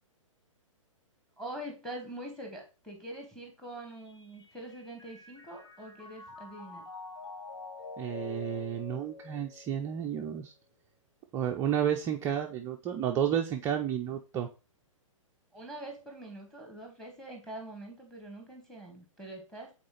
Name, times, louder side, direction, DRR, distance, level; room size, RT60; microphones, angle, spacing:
voice 1, 1.4-6.9 15.5-19.7, right 1 dB, 5° left, 2 dB, 1.6 m, -44 dB
Mallet percussion, 3.7-10.1, left 3 dB, 55° left, 1.1 m, -46 dB
voice 2, 8.0-10.5 11.3-14.5, right 9 dB, 15° right, 3 dB, 0.4 m, -31 dB
8.4 x 4.2 x 3.1 m, 0.31 s
figure-of-eight pair, 120°, 17 cm